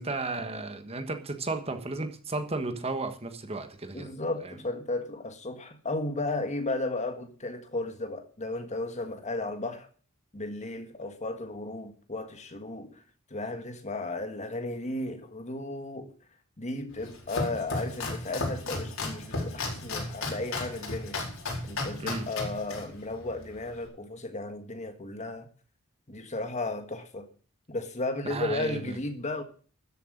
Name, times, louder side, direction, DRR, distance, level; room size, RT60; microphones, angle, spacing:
voice 1, 0.0-4.1 22.0-22.3 28.2-29.0, right 3 dB, 30° right, 1.4 m, -34 dB
voice 2, 3.9-9.9 10.3-13.0 13.3-16.1 16.6-21.2 21.6-25.5 26.1-27.3 27.7-29.4, left 2 dB, 35° left, 1.7 m, -34 dB
Domestic sounds home sounds, 16.9-23.9, left 2 dB, 90° left, 4.6 m, -35 dB
13.0 x 7.9 x 6.6 m
head